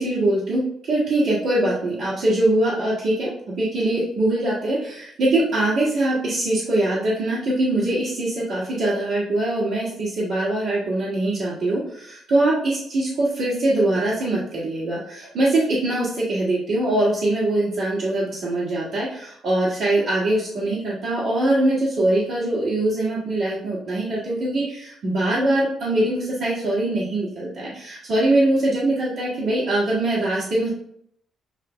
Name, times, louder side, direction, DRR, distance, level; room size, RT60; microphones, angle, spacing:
voice 1, 0.0-30.7, right 1 dB, 80° right, -9 dB, 1.8 m, -22 dB
8.0 x 2.9 x 2.2 m, 0.68 s
cardioid pair, 90°, 0 cm